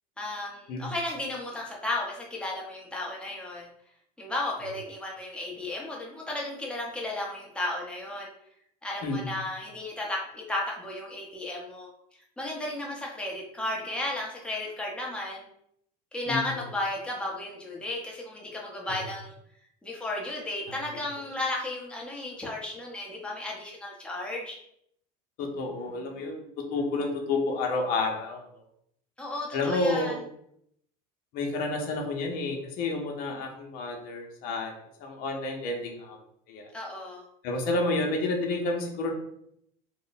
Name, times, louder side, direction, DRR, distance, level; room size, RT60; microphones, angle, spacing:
voice 1, 0.2-3.7 4.2-8.3 8.8-11.9 12.4-15.5 16.1-19.3 19.8-24.6 29.2-30.1 36.7-37.2, left 2 dB, 5° left, -3 dB, 0.9 m, -34 dB
voice 2, 9.0-9.3 16.3-16.5 25.4-26.4 26.7-28.6 29.5-30.1 31.3-34.7 35.0-36.2 36.5-36.7 37.4-39.1, left 2 dB, 60° left, 1 dB, 0.8 m, -30 dB
3.0 x 2.2 x 4.0 m, 0.71 s
supercardioid pair, 125°, 18 cm